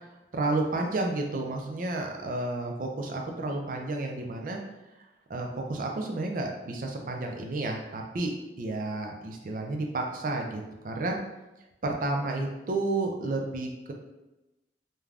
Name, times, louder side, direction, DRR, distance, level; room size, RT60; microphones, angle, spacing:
voice 1, 0.3-4.6 5.3-11.2 11.8-13.9, right 2 dB, 50° right, 2 dB, 0.4 m, -31 dB
3.2 x 2.2 x 2.4 m, 1.0 s
head